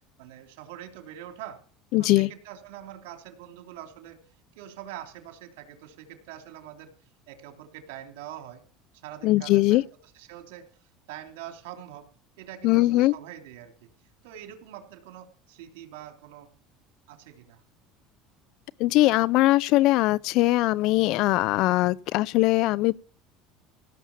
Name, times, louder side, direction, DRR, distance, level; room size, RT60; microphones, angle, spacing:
voice 1, 0.2-1.6 2.0-4.2 4.5-6.9 7.3-8.6 9.0-9.8 10.1-10.7 11.1-12.1 12.4-13.9 14.2-16.5 17.1-17.6, right 11 dB, 80° right, 3.1 m, -44 dB
voice 2, 1.9-2.3 9.2-9.8 12.6-13.1 18.8-22.9, left 18 dB, 65° left, 0.7 m, -21 dB
17.0 x 7.2 x 7.2 m
supercardioid pair, 105°, 0 cm